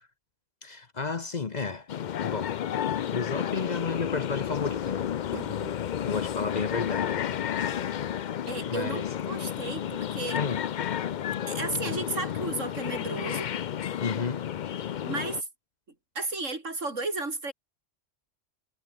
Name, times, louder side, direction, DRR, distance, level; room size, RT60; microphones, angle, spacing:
voice 1, 0.6-1.9 2.2-2.6 3.0-5.1 6.1-7.2 8.7-9.0 10.3-10.6 14.0-14.5, left 4 dB, 40° left, 0.9 m, -32 dB
sound 1, 1.9-15.4, left 9 dB, 55° left, 0.5 m, -31 dB
voice 2, 5.3-5.7 8.5-10.4 11.5-13.5 15.0-15.5 16.2-17.5, right 3 dB, 85° right, 4.2 m, -34 dB
omnidirectional pair, 1.3 m